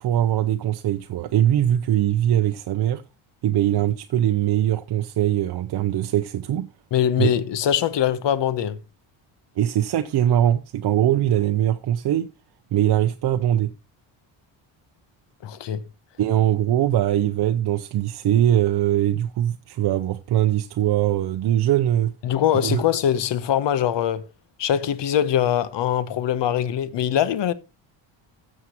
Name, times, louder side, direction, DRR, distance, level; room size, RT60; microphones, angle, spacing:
voice 1, 0.0-3.0 3.4-6.7 7.2-7.3 9.6-12.3 12.7-13.7 16.2-22.1 22.6-22.8, right 12 dB, 55° right, 0.7 m, -21 dB
voice 2, 6.9-8.8 15.4-15.8 22.2-24.3 24.6-27.5, left 10 dB, 60° left, 1.0 m, -22 dB
13.0 x 7.3 x 2.9 m
cardioid pair, 95°, 48 cm